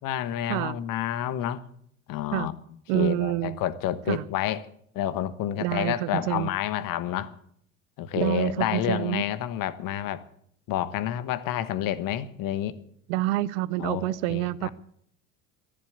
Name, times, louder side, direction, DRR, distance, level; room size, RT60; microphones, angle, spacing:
voice 1, 0.0-1.6 2.1-2.5 2.9-4.7 4.9-7.3 8.0-10.2 10.7-12.8 13.8-14.7, left 11 dB, 50° left, 1.3 m, -29 dB
voice 2, 2.9-3.6 4.1-4.2 5.6-6.5 8.1-9.2 13.1-14.7, right 16 dB, 65° right, 0.7 m, -27 dB
14.0 x 11.5 x 8.1 m
hypercardioid pair, 85°, 42 cm